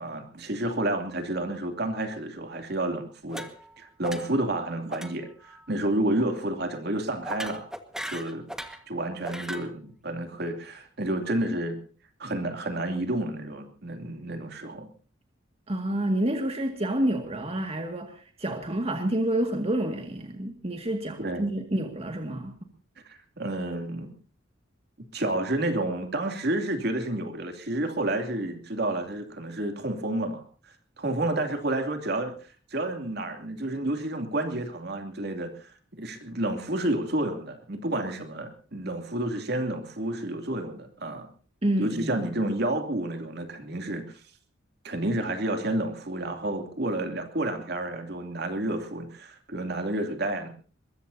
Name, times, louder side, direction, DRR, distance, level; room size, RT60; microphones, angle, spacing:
voice 1, 0.0-3.4 3.8-7.6 8.1-8.5 8.9-11.8 12.2-14.9 21.2-21.5 23.0-24.1 25.1-32.3 32.7-41.3 41.8-44.0 44.8-50.5, right 1 dB, 55° right, 5 dB, 2.8 m, -30 dB
sound 1, 3.3-3.8 4.0-4.5 4.9-5.1 5.4-5.7 7.2-8.8 9.2-9.7, equal, 5° right, 1.6 m, -38 dB
voice 2, 15.7-22.5 41.6-42.3, right 1 dB, 30° right, 4 dB, 2.1 m, -28 dB
22.0 x 21.5 x 2.8 m, 0.40 s
head